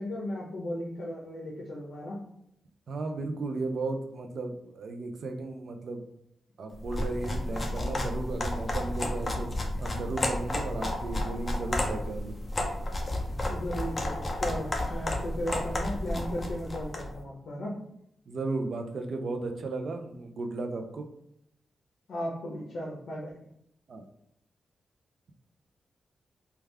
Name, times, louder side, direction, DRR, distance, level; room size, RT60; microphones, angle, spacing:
voice 1, 0.0-2.2 13.4-17.8 22.1-23.3, equal, 65° left, -3 dB, 0.7 m, -35 dB
voice 2, 2.9-6.0 6.6-9.5 9.8-12.4 18.3-21.0 23.9-24.0, right 3 dB, 60° right, 5 dB, 0.4 m, -35 dB
sound 1, 6.8-17.1, left 1 dB, 25° left, 0.5 m, -32 dB
3.4 x 2.3 x 3.3 m, 0.76 s
wide cardioid pair, 150°, 0 cm